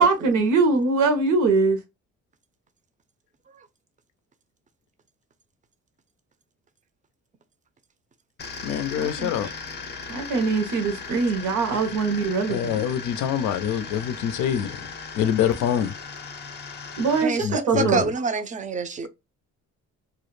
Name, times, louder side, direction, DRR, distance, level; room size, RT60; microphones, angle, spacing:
voice 1, 0.0-1.8 9.0-9.3 10.1-12.8 17.0-18.1, right 4 dB, 80° right, 0.7 m, -22 dB
sound 1, 8.4-17.2, left 5 dB, 35° left, 0.5 m, -37 dB
voice 2, 8.6-9.5 12.5-14.9 15.1-15.9 17.4-18.0, left 9 dB, 85° left, 0.5 m, -25 dB
voice 3, 17.2-19.1, right 5 dB, 25° right, 0.4 m, -27 dB
2.3 x 2.0 x 3.0 m
cardioid pair, 90°, 30 cm